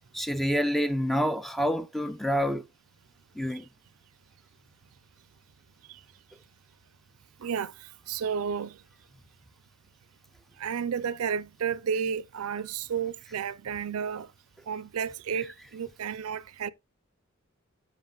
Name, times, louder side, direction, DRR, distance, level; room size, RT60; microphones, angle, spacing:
voice 1, 0.1-2.7 3.4-3.7, equal, ahead, 0.3 m, -27 dB
voice 2, 7.4-7.7 8.1-8.8 10.6-14.3 14.7-16.7, right 7 dB, 75° right, 0.5 m, -32 dB
13.5 x 5.0 x 2.3 m
head